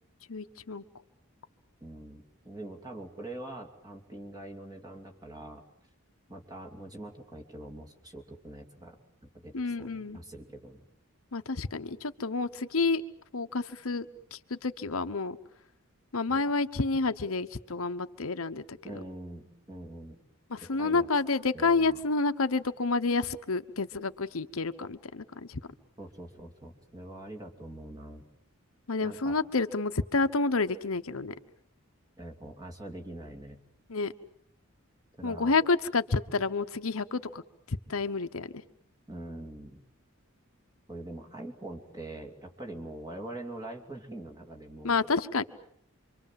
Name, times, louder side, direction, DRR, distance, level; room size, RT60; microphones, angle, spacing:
voice 1, 0.3-0.8 9.5-10.2 11.3-13.0 13.3-14.0 14.3-15.4 16.1-18.8 20.5-25.6 28.9-31.3 33.9-34.1 35.2-37.4 37.7-38.6 44.8-45.4, left 3 dB, 75° left, 9 dB, 1.0 m, -29 dB
voice 2, 1.8-5.6 6.3-9.0 9.2-10.8 16.3-16.4 18.8-20.2 20.6-21.1 21.5-22.0 26.0-28.3 29.0-29.4 32.2-33.6 35.2-35.6 39.1-39.8 40.9-45.0, right 1 dB, 20° right, 1 dB, 2.8 m, -43 dB
27.5 x 24.5 x 7.6 m, 0.69 s
head